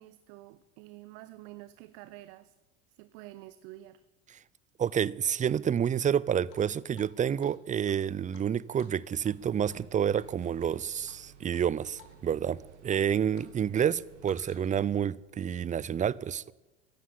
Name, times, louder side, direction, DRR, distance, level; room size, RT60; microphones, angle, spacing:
voice 1, 0.0-2.5 2.9-4.0 13.4-13.9, right 17 dB, 65° right, 0.8 m, -49 dB
voice 2, 4.8-16.5, right 8 dB, 20° right, 0.5 m, -29 dB
Drip, 6.5-7.1 7.4-7.5 7.9-9.4 9.7-9.9 10.1-10.7 11.1-11.6 12.0-12.1 12.4-13.5 13.8-14.9, left 8 dB, 70° left, 3.4 m, -58 dB
sound 1, 9.4-15.0, right 8 dB, 80° right, 2.0 m, -55 dB
14.5 x 11.5 x 8.5 m
hypercardioid pair, 80°, 35 cm